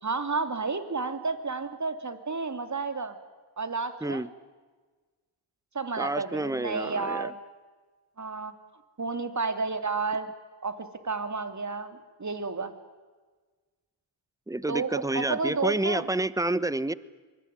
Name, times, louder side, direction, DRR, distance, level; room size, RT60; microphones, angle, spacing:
voice 1, 0.0-3.2 3.6-4.2 5.7-7.3 8.2-8.5 9.0-10.3 10.6-12.7 14.7-16.1, right 4 dB, 35° right, 9 dB, 3.2 m, -31 dB
voice 2, 6.0-7.3 14.5-16.9, right 2 dB, 5° right, 17 dB, 1.1 m, -29 dB
24.5 x 21.0 x 9.7 m, 1.4 s
supercardioid pair, 45°, 49 cm